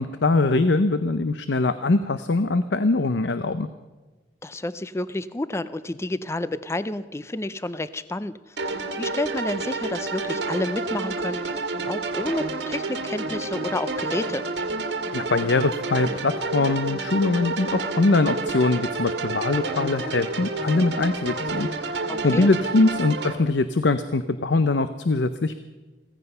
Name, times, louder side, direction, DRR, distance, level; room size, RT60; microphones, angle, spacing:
voice 1, 0.0-3.7 15.1-25.5, left 3 dB, 75° left, 11 dB, 0.7 m, -22 dB
voice 2, 4.4-8.4 8.6-14.4 22.1-22.5, left 1 dB, 15° left, 15 dB, 0.4 m, -30 dB
sound 1, 8.6-23.3, right 3 dB, 75° right, 1.7 m, -29 dB
16.0 x 15.0 x 5.6 m, 1.2 s
head